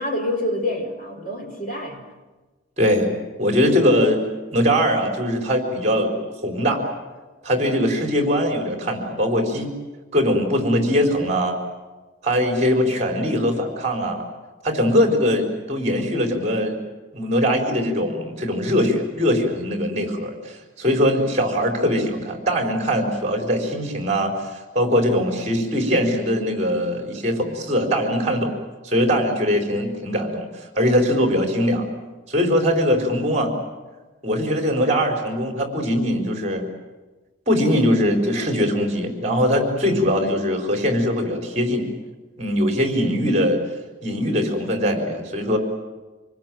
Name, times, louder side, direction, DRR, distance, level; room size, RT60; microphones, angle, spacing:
voice 1, 0.0-2.0, left 1 dB, 40° left, 3 dB, 4.2 m, -27 dB
voice 2, 2.8-3.1 3.4-4.2 4.5-6.1 6.4-6.8 7.4-9.7 10.1-11.6 12.2-14.2 14.6-16.8 17.1-24.3 24.7-28.5 28.8-30.5 30.7-31.8 32.3-33.5 34.2-36.6 37.5-41.8 42.4-43.6 44.0-45.6, equal, 35° right, 3 dB, 4.3 m, -21 dB
26.5 x 20.5 x 9.2 m, 1.2 s
head